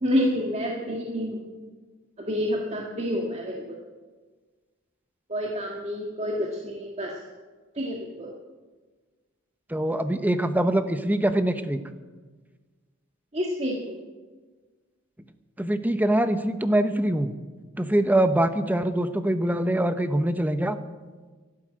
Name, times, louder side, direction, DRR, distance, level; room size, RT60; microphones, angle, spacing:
voice 1, 0.0-1.4 2.2-3.8 5.3-7.1 7.8-8.3 13.3-14.0, equal, 35° right, -1 dB, 1.7 m, -28 dB
voice 2, 9.7-11.8 15.6-17.3 17.8-20.8, right 1 dB, 10° right, 10 dB, 0.8 m, -23 dB
12.5 x 11.5 x 8.7 m, 1.4 s
head